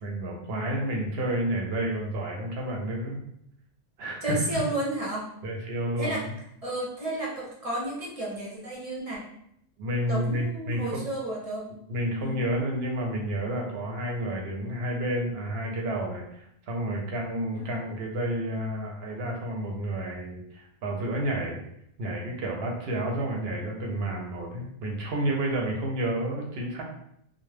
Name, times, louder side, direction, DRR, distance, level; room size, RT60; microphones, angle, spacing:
voice 1, 0.0-3.2 4.0-4.4 5.4-6.3 9.8-11.0 11.9-21.6 22.0-26.8, right 1 dB, 75° right, 0 dB, 0.8 m, -30 dB
voice 2, 4.2-5.3 6.0-6.2 6.6-9.2 10.1-11.6 12.2-12.4 17.5-17.7, right 1 dB, 45° right, -4 dB, 0.5 m, -32 dB
2.1 x 2.0 x 3.2 m, 0.74 s
omnidirectional pair, 1.1 m